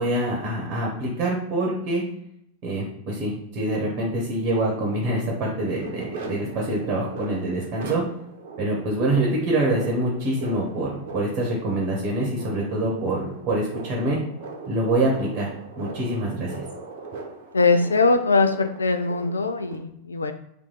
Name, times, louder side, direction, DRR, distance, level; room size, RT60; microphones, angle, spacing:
voice 1, 0.0-2.0 2.6-8.0 8.6-14.2 14.7-15.5 15.8-16.5, right 1 dB, 35° right, -2 dB, 1.2 m, -25 dB
sound 1, 4.6-19.8, right 3 dB, 55° right, 0.9 m, -40 dB
voice 2, 17.5-20.3, left 3 dB, 75° left, 8 dB, 0.4 m, -21 dB
3.4 x 3.1 x 4.0 m, 0.75 s
figure-of-eight pair, 90°, 0 cm